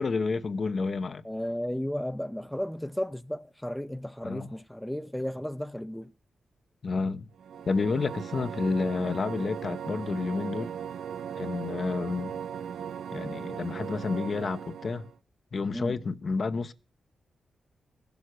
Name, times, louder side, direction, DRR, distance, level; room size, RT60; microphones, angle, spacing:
voice 1, 0.0-1.2 4.2-4.5 6.8-7.3 7.7-10.7 11.4-12.4 13.1-15.1 15.5-16.7, left 4 dB, 50° left, 0.8 m, -30 dB
voice 2, 1.2-6.1 15.7-16.0, equal, 5° left, 0.5 m, -34 dB
sound 1, 7.3-15.2, right 8 dB, 85° right, 0.6 m, -38 dB
15.5 x 7.1 x 6.3 m
cardioid pair, 80°, 0 cm